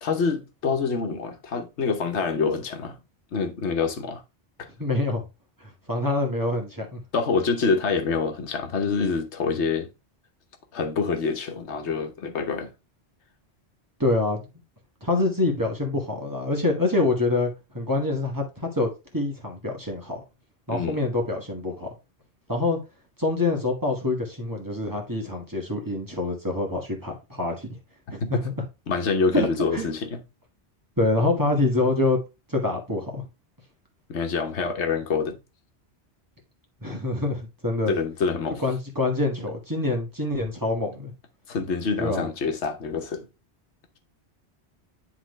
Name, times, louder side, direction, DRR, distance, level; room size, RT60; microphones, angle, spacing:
voice 1, 0.0-3.0 3.3-4.2 4.6-4.7 6.3-6.4 7.1-9.9 10.7-12.7 20.7-21.1 28.2-28.4 28.9-30.2 34.1-35.4 37.9-38.6 41.5-43.3, left 5 dB, 85° left, 1.3 m, -26 dB
voice 2, 4.8-5.2 5.6-7.0 14.0-14.5 15.0-20.2 20.7-21.9 22.5-22.8 23.2-27.8 28.1-28.5 29.3-29.5 29.7-29.9 31.0-32.2 32.5-33.2 36.8-38.0 38.6-41.1 42.0-42.3, left 2 dB, 20° right, 1.6 m, -26 dB
9.9 x 3.7 x 3.2 m
omnidirectional pair, 1.1 m